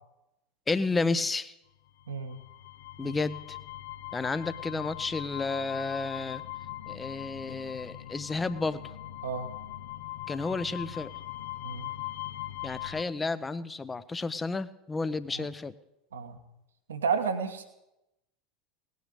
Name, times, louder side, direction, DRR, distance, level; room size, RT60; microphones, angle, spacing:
voice 1, 0.7-1.5 3.0-3.6 4.1-6.4 6.9-8.8 10.3-11.1 12.6-15.7, left 3 dB, 15° left, 15 dB, 0.8 m, -31 dB
sound 1, 2.0-13.0, left 14 dB, 65° left, 0.9 m, -41 dB
voice 2, 2.1-2.4 3.0-3.2 9.2-9.5 11.6-11.9 15.4-15.5 16.1-16.4 16.9-17.6, right 6 dB, 70° right, 8 dB, 1.6 m, -31 dB
18.5 x 9.4 x 8.4 m, 0.90 s
figure-of-eight pair, 75°, 0 cm